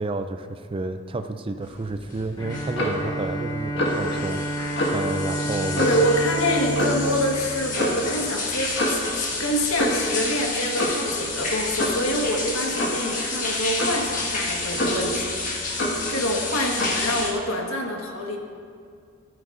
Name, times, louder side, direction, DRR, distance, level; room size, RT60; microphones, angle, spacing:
voice 1, 0.0-4.5 4.9-5.9, right 2 dB, 25° right, 8 dB, 0.4 m, -30 dB
sound 1, 1.6-17.3, left 3 dB, 35° left, 1.7 m, -31 dB
Bowed string instrument, 2.4-8.6, right 1 dB, 20° left, 1.2 m, -30 dB
Clock, 2.8-3.0 3.8-4.1 4.8-5.0 5.8-6.1 6.8-7.1 7.8-8.0 8.8-9.1 9.8-10.1 10.8-11.1 11.8-12.0 12.8-13.1 13.8-14.0 14.8-15.2 15.8-16.1 16.8-17.0, equal, 55° left, 1.9 m, -26 dB
voice 2, 5.8-18.4, equal, 70° left, 0 dB, 1.5 m, -26 dB
14.5 x 14.0 x 2.6 m, 2.3 s
head